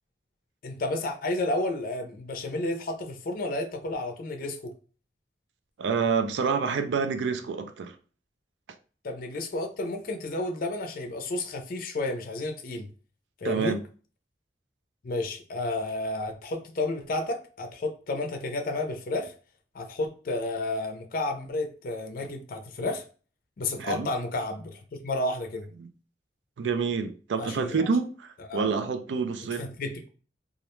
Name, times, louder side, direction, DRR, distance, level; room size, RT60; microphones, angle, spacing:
voice 1, 0.6-4.7 9.0-12.9 13.4-13.8 15.0-19.3 19.7-23.0 23.6-25.7 27.4-27.9 28.5-28.7 29.6-30.1, left 2 dB, 55° left, 0.4 m, -31 dB
voice 2, 5.8-8.0 13.4-13.8 23.8-24.1 25.8-25.9 26.6-29.7, right 5 dB, 85° right, 0.4 m, -28 dB
2.4 x 2.1 x 2.9 m
head